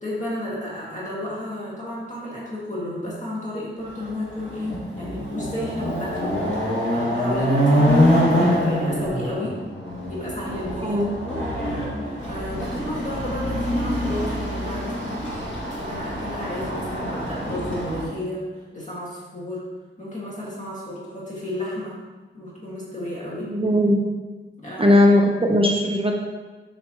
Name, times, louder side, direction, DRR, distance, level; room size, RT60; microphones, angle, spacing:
voice 1, 0.0-9.5 10.1-11.4 12.2-15.3 15.7-18.4 18.7-19.6 20.0-22.0 22.3-23.5 24.6-25.0, left 1 dB, 35° left, -7 dB, 1.8 m, -32 dB
Chatter / Car passing by / Motorcycle, 4.0-4.1 4.5-18.0, equal, 70° left, 2.0 m, -24 dB
voice 2, 23.4-24.0 24.8-26.1, left 1 dB, 25° right, 1 dB, 0.7 m, -18 dB
7.1 x 5.5 x 3.0 m, 1.3 s
wide cardioid pair, 80°, 20 cm